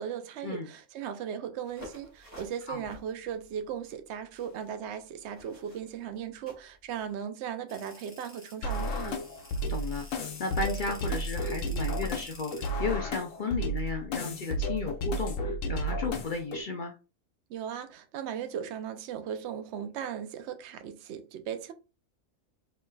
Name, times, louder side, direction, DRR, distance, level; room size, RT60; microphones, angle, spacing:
voice 1, 0.0-9.2 17.5-21.7, right 8 dB, 65° right, 0.8 m, -37 dB
sound 1, 1.6-7.1, left 1 dB, 10° right, 1.9 m, -52 dB
sound 2, 7.7-12.7, left 1 dB, 10° left, 1.0 m, -51 dB
sound 3, 8.6-16.6, equal, 75° left, 1.1 m, -32 dB
voice 2, 9.7-16.9, left 4 dB, 55° left, 0.5 m, -34 dB
4.6 x 3.2 x 2.3 m
omnidirectional pair, 1.4 m